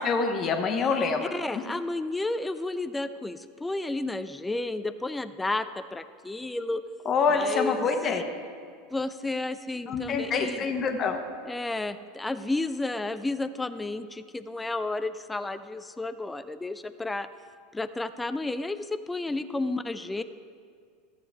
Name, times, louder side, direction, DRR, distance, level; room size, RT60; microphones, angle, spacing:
voice 1, 0.0-1.2 7.0-8.2 9.9-11.2 19.5-19.6, left 5 dB, 40° left, 5 dB, 1.1 m, -26 dB
voice 2, 1.3-6.8 7.3-7.9 8.9-10.6 11.5-17.3 17.7-20.2, left 2 dB, 10° left, 12 dB, 0.4 m, -32 dB
13.5 x 7.5 x 3.4 m, 2.1 s
hypercardioid pair, 90°, 0 cm